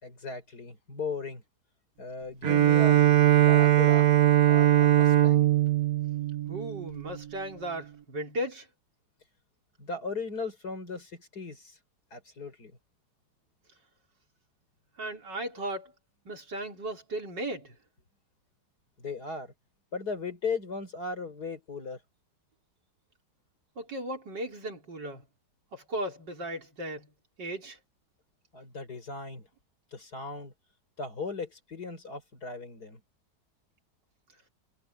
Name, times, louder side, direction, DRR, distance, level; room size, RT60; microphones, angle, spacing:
voice 1, 0.0-1.4 2.0-3.0 3.4-4.1 4.5-5.5 9.8-11.7 12.1-12.7 19.0-19.5 19.9-22.0 28.5-29.5 29.9-30.5 31.0-33.0, left 4 dB, 60° left, 5.3 m, -37 dB
Bowed string instrument, 2.4-7.1, right 12 dB, 60° right, 1.3 m, -21 dB
voice 2, 6.5-8.7 15.0-15.9 16.3-17.7 23.8-25.2 25.7-27.1 27.4-27.8, right 1 dB, 90° right, 4.6 m, -36 dB
omnidirectional pair, 1.8 m